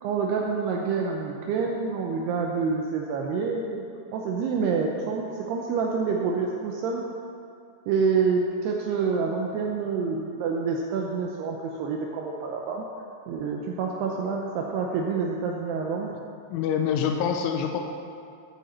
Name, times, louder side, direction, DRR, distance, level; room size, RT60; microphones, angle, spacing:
voice 1, 0.0-3.9 4.1-7.0 7.9-12.8 13.3-16.2, right 5 dB, 85° right, 0 dB, 2.3 m, -27 dB
voice 2, 16.5-17.8, left 7 dB, 85° left, 4 dB, 3.2 m, -26 dB
14.5 x 9.3 x 4.3 m, 2.4 s
omnidirectional pair, 5.7 m